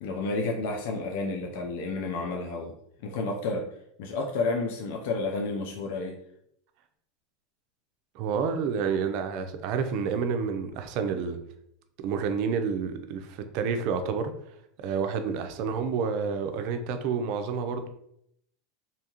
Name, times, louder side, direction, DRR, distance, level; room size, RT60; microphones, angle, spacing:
voice 1, 0.0-2.8 3.0-3.7 4.0-6.2, left 3 dB, 70° left, 0.4 m, -30 dB
voice 2, 8.1-11.4 12.0-14.3 14.8-17.9, right 6 dB, 60° right, 0.4 m, -29 dB
2.7 x 2.3 x 2.9 m
supercardioid pair, 110°, 0 cm